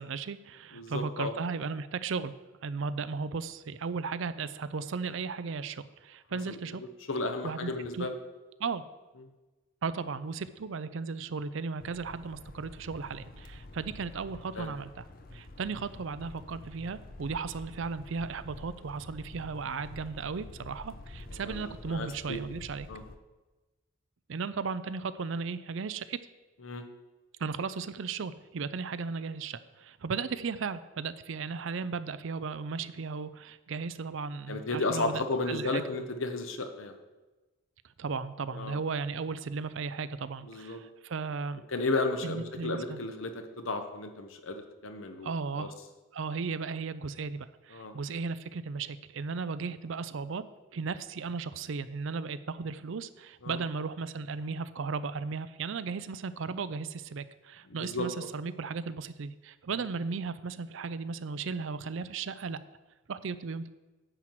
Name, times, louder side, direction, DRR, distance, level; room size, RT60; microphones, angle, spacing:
voice 1, 0.0-2.3 2.6-6.8 7.4-8.1 8.6-8.8 9.8-15.1 15.3-22.9 24.3-26.2 27.4-35.9 38.0-41.6 42.2-43.0 45.2-45.8 46.1-50.4 50.7-62.6 63.1-63.7, right 5 dB, 60° right, 14 dB, 0.5 m, -36 dB
voice 2, 0.7-1.3 6.3-6.6 7.1-8.1 14.6-14.7 21.4-22.4 22.9-23.0 26.6-26.8 34.5-36.9 38.5-38.8 40.4-40.8 41.7-45.3 45.6-45.7 47.7-48.0 53.4-53.6 57.7-58.3, left 2 dB, 70° left, 6 dB, 1.0 m, -33 dB
sound 1, 11.8-23.2, left 2 dB, 40° left, 0.6 m, -48 dB
9.9 x 4.6 x 7.4 m, 1.2 s
head